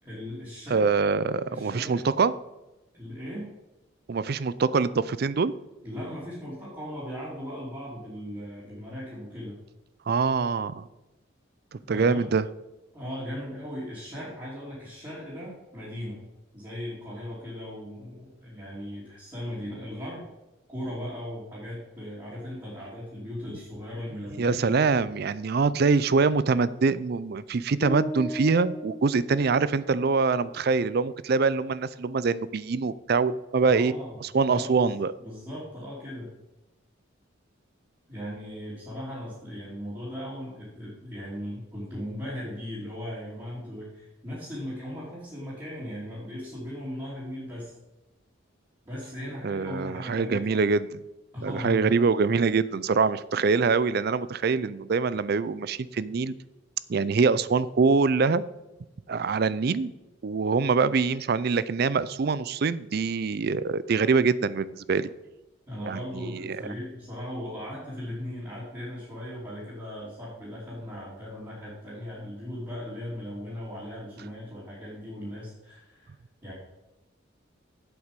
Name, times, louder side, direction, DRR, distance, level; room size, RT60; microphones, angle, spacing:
voice 1, 0.0-0.9 1.5-2.0 2.9-3.5 5.8-9.6 11.9-12.2 12.9-16.2 16.5-20.2 20.7-24.8 33.6-34.2 34.5-36.3 38.1-47.7 48.8-50.7 51.3-51.9 65.7-76.1 76.4-76.5, equal, 20° right, -10 dB, 3.2 m, -38 dB
voice 2, 0.7-2.3 4.1-5.5 10.1-10.9 11.7-12.4 24.4-33.9 34.2-35.1 49.4-50.9 51.4-56.4 56.9-58.4 59.1-59.9 60.2-65.1 65.9-66.6, right 4 dB, 50° right, 17 dB, 0.4 m, -24 dB
sound 1, 27.8-30.0, equal, 40° left, 1.0 m, -36 dB
8.1 x 8.1 x 5.2 m, 1.0 s
head